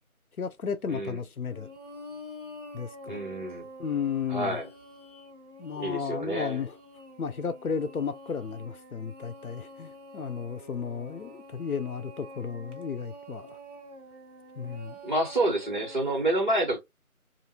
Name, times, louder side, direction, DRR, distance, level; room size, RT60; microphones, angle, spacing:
voice 1, 0.4-1.7 2.7-3.2 3.8-4.6 5.6-6.8 7.2-13.6 14.6-15.0, left 6 dB, 75° left, 0.6 m, -33 dB
voice 2, 0.9-1.2 3.0-3.7 4.3-4.7 5.7-6.6 15.0-16.8, right 1 dB, 35° right, 1.1 m, -28 dB
sound 1, 1.5-16.2, equal, 55° right, 1.3 m, -47 dB
2.8 x 2.5 x 2.7 m
figure-of-eight pair, 170°, 44 cm